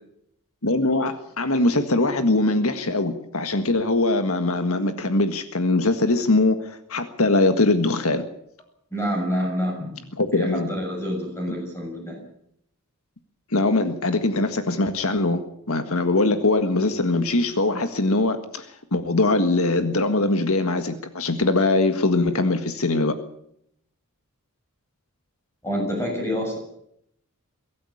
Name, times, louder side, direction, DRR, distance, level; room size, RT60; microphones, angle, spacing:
voice 1, 0.6-8.2 10.2-10.7 13.5-15.4 15.7-23.1, left 2 dB, 75° left, 8 dB, 1.7 m, -22 dB
voice 2, 8.9-10.0 10.3-12.2 25.6-26.6, equal, 10° left, 1 dB, 6.9 m, -27 dB
23.0 x 14.0 x 8.6 m, 0.72 s
head